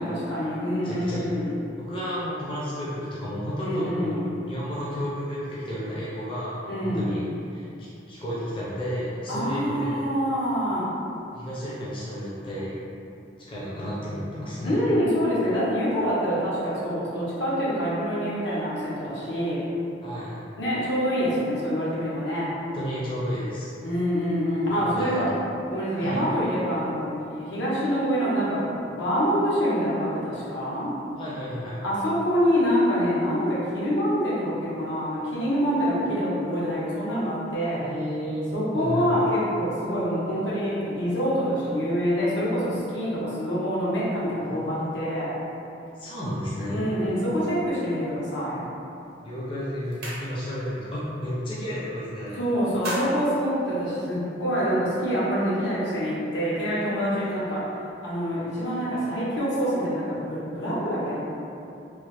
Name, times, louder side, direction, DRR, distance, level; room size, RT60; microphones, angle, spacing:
voice 1, 0.0-1.5 3.6-4.2 6.7-7.1 9.3-10.9 14.6-19.7 20.6-22.5 23.8-25.3 25.7-30.9 31.8-37.8 38.5-45.3 46.7-48.6 52.4-57.7 58.0-61.2, equal, 80° left, -8 dB, 0.9 m, -26 dB
voice 2, 0.8-1.2 1.9-7.2 7.5-10.0 11.3-12.8 13.5-14.8 20.0-20.4 22.6-23.7 24.7-25.2 26.0-26.2 31.2-31.8 37.8-38.5 38.7-39.1 44.4-45.0 46.0-46.8 49.2-52.4 58.7-58.8, equal, 30° left, -9 dB, 0.5 m, -32 dB
sound 1, 49.0-49.2 49.6-50.7 51.1-51.3 51.6-52.2 52.5-54.4, right 1 dB, 60° right, 0.6 m, -36 dB
3.1 x 2.1 x 3.2 m, 2.7 s
head